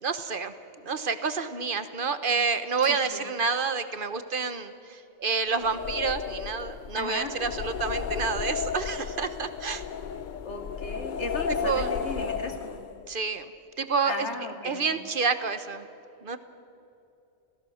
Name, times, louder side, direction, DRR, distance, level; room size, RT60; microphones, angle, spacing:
voice 1, 0.0-0.5 0.8-9.8 11.6-11.9 13.1-13.4 13.8-14.3 14.6-15.8 16.2-16.4, right 5 dB, 50° right, 11 dB, 1.2 m, -29 dB
voice 2, 2.9-3.2 6.9-7.3 10.4-12.8 14.1-15.0, left 3 dB, 75° left, 4 dB, 2.4 m, -36 dB
sound 1, 5.5-13.1, left 6 dB, 50° left, 0.7 m, -33 dB
28.5 x 17.5 x 6.4 m, 2.7 s
omnidirectional pair, 1.2 m